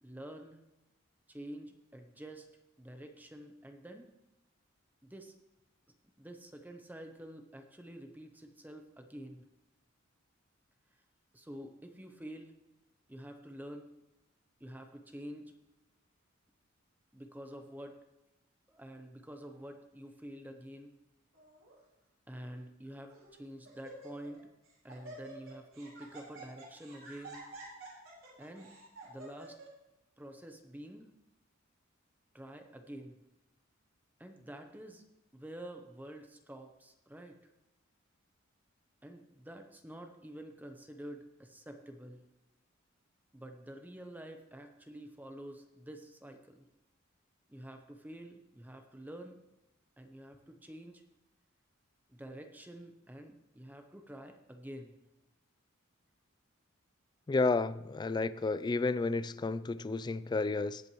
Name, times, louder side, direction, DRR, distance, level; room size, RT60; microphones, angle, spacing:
voice 1, 0.0-0.6 1.3-2.5 2.8-4.1 5.0-5.3 6.2-9.5 11.3-12.5 13.1-14.0 14.6-15.5 17.1-18.0 18.7-20.9 22.3-24.5 24.8-27.4 28.4-28.8 29.0-29.6 30.2-31.1 32.3-33.2 34.2-35.0 35.3-37.5 39.0-42.2 43.3-46.7 47.5-49.4 50.0-51.0 52.1-54.9, right 1 dB, 10° right, 5 dB, 0.7 m, -48 dB
Laughter, 21.3-21.7 22.5-22.6 23.1-23.4 23.6-24.4 24.7-29.7, right 2 dB, 75° right, 4.3 m, -50 dB
voice 2, 57.3-60.8, left 3 dB, 20° left, 15 dB, 0.3 m, -31 dB
18.5 x 8.3 x 3.1 m, 0.94 s
head